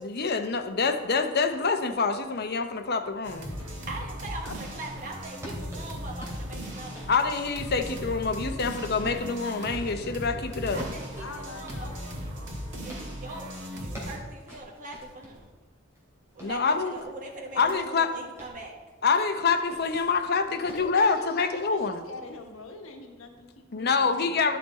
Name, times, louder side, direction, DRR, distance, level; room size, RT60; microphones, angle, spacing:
voice 1, 0.0-3.5 7.1-10.8 16.4-16.9 17.6-18.1 19.0-22.0 23.7-24.6, left 4 dB, 50° left, 7 dB, 0.7 m, -26 dB
sound 1, 3.2-14.2, equal, 60° right, 2.0 m, -38 dB
sound 2, 3.6-3.8 4.4-9.9 10.6-13.1 13.6-15.5 15.9-17.8 18.2-18.6 19.5-20.2 20.7-20.9, equal, 15° right, 2.8 m, -45 dB
voice 2, 3.9-7.1 10.7-12.2 12.8-13.5 13.8-15.5 16.3-18.8, right 2 dB, 40° right, -1 dB, 1.2 m, -41 dB
voice 3, 11.2-12.0 20.4-24.4, left 3 dB, 85° left, 3 dB, 1.2 m, -43 dB
12.0 x 5.8 x 4.2 m, 1.3 s
head